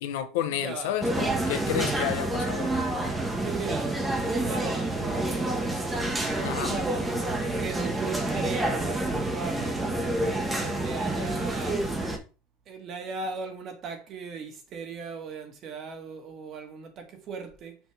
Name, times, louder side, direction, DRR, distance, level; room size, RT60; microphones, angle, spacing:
voice 1, 0.0-2.7 6.4-6.8, left 10 dB, 80° left, 0.9 m, -31 dB
voice 2, 0.5-1.0 3.4-5.5 6.6-7.1 7.6-9.9 10.6-11.9 12.7-17.8, right 5 dB, 45° right, 1.7 m, -37 dB
sound 1, 1.0-12.2, right 2 dB, 10° right, 1.2 m, -28 dB
6.2 x 4.5 x 3.5 m
supercardioid pair, 120°, 0 cm